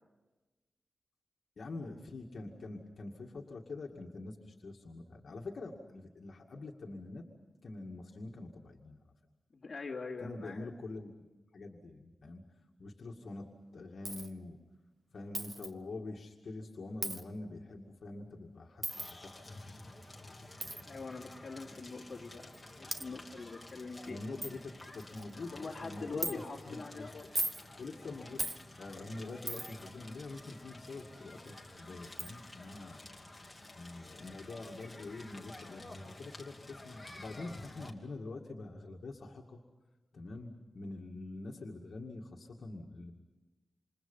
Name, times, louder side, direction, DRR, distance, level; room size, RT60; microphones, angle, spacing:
voice 1, 1.6-7.3 7.6-9.0 10.2-11.2 11.5-12.4 12.8-13.5 13.7-14.6 15.1-19.8 20.2-20.8 24.1-27.1 27.8-28.5 28.8-33.0 33.7-39.6 40.1-43.1, left 2 dB, 60° left, 0 dB, 2.2 m, -45 dB
voice 2, 9.5-10.7 20.9-24.2 25.5-27.2, left 4 dB, 35° left, -3 dB, 3.0 m, -43 dB
Coin (dropping), 14.0-14.3 15.3-15.7 17.0-17.2 18.8-19.1 20.6-20.8 21.8-21.9 22.5-22.6 22.9-23.1 23.7-23.8 24.1-24.2 24.4-24.5 25.0-25.3 26.2-26.3 27.2-27.6 28.4-28.6 29.5-29.8 31.5-31.6 32.2-32.3, right 1 dB, 20° right, 1.1 m, -37 dB
Crackle, 18.9-37.9, left 2 dB, 10° left, 2.8 m, -51 dB
28.5 x 27.5 x 5.6 m, 1.2 s
wide cardioid pair, 150°, 0 cm